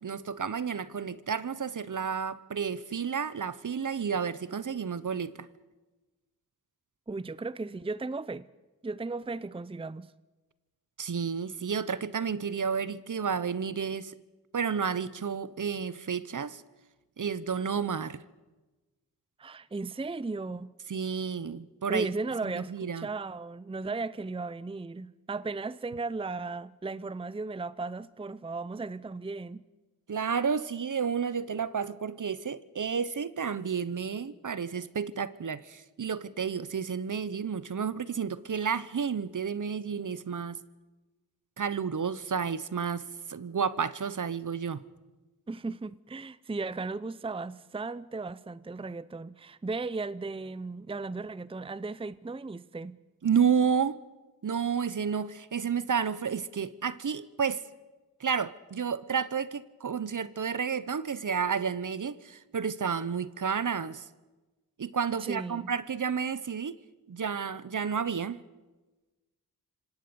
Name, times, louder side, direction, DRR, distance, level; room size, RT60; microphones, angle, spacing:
voice 1, 0.0-5.5 11.0-14.1 14.5-16.6 17.2-18.2 20.9-22.1 22.5-23.1 30.1-40.6 41.6-44.8 53.2-54.0 54.4-57.7 58.2-64.0 64.8-66.8 67.1-68.4, right 6 dB, 55° right, 1.0 m, -31 dB
voice 2, 7.1-8.5 8.8-10.1 19.4-20.7 21.9-29.6 45.5-53.0 65.2-65.7, right 3 dB, 15° right, 0.6 m, -36 dB
26.0 x 17.5 x 7.0 m
cardioid pair, 45°, 38 cm